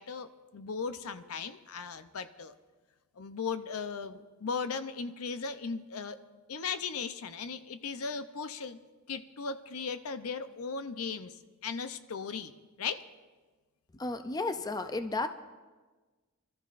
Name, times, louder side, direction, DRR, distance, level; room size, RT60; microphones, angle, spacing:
voice 1, 0.0-2.5 3.2-6.2 6.5-8.8 9.1-12.5 12.8-13.0, left 5 dB, 75° left, 11 dB, 0.6 m, -37 dB
voice 2, 13.9-15.3, left 3 dB, 15° left, 9 dB, 0.4 m, -33 dB
25.0 x 13.5 x 2.5 m, 1.3 s
head